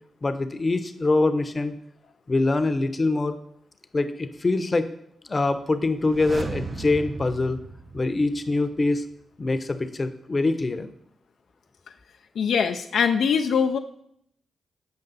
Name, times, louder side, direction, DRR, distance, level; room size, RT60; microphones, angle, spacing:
voice 1, 0.2-1.7 2.3-3.4 3.9-4.9 5.3-7.6 7.9-9.0 9.4-10.9, left 2 dB, 40° left, 11 dB, 0.7 m, -24 dB
sound 1, 5.9-8.8 9.1-9.2, right 3 dB, 45° right, 0.7 m, -37 dB
voice 2, 12.4-13.8, left 6 dB, 75° left, 6 dB, 0.3 m, -22 dB
7.8 x 5.2 x 4.0 m, 0.71 s
supercardioid pair, 45°, 0 cm